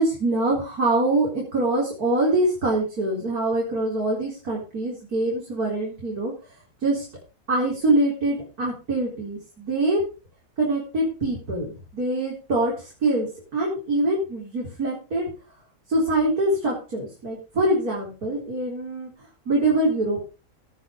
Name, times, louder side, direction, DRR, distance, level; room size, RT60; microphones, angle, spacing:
voice 1, 0.0-6.3 6.8-7.1 7.5-10.0 10.6-11.7 11.9-15.3 15.9-19.1 19.5-20.3, right 2 dB, 90° right, -3 dB, 4.7 m, -24 dB
18.0 x 6.5 x 5.3 m, 0.33 s
omnidirectional pair, 1.6 m